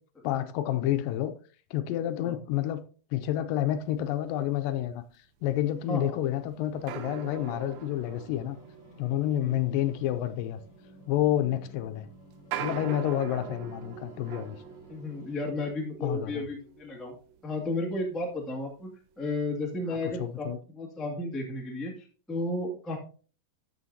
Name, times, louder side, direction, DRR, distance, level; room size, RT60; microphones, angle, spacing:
voice 1, 0.2-1.4 1.7-2.9 3.1-5.0 5.4-8.6 9.0-10.6 11.1-12.1 12.6-14.6 16.0-16.4 19.9-20.6, left 12 dB, 80° left, 2.2 m, -29 dB
sound 1, 5.4-15.4, right 1 dB, 55° left, 1.2 m, -54 dB
sound 2, 5.6-5.7 6.9-18.8 19.2-19.3 19.8-20.0, right 10 dB, 90° right, 2.6 m, -43 dB
voice 2, 14.9-17.1 17.4-18.9 19.2-23.0, left 2 dB, ahead, 0.6 m, -33 dB
13.0 x 6.4 x 2.7 m
omnidirectional pair, 4.1 m